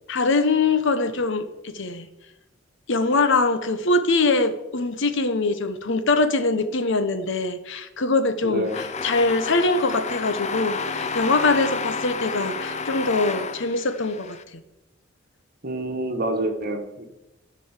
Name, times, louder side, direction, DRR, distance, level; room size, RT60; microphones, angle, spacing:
voice 1, 0.1-2.1 2.9-14.4, left 3 dB, 65° left, 10 dB, 1.0 m, -23 dB
voice 2, 8.4-8.8 15.6-17.0, right 1 dB, 50° right, 4 dB, 1.6 m, -27 dB
sound 1, 8.7-14.4, left 4 dB, 35° left, 0.6 m, -30 dB
12.5 x 5.4 x 7.4 m, 0.96 s
head